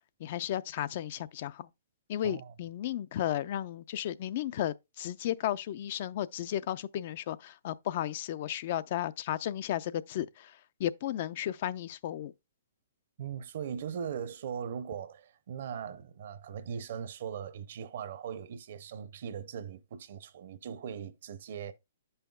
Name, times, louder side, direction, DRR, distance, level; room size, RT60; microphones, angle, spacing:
voice 1, 0.2-1.7 2.1-12.3, left 12 dB, 50° left, 0.3 m, -34 dB
voice 2, 2.2-2.5 13.2-21.7, right 7 dB, 60° right, 0.6 m, -39 dB
9.9 x 5.6 x 2.3 m
hypercardioid pair, 145°, 0 cm